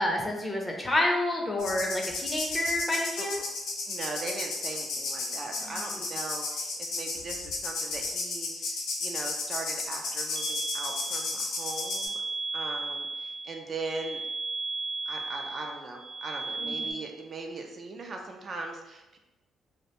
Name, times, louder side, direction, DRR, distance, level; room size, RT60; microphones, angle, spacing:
voice 1, 0.0-3.4 5.6-5.7 16.6-16.9, left 1 dB, 20° left, 0 dB, 0.5 m, -29 dB
sound 1, 1.6-12.1, left 3 dB, 80° left, 0.5 m, -34 dB
voice 2, 3.9-12.2 12.5-14.2 15.1-19.2, right 3 dB, 45° right, 2 dB, 0.3 m, -39 dB
sound 2, 10.4-16.9, right 3 dB, 85° right, 0.7 m, -35 dB
2.4 x 2.1 x 2.8 m, 1.0 s
cardioid pair, 90°, 0 cm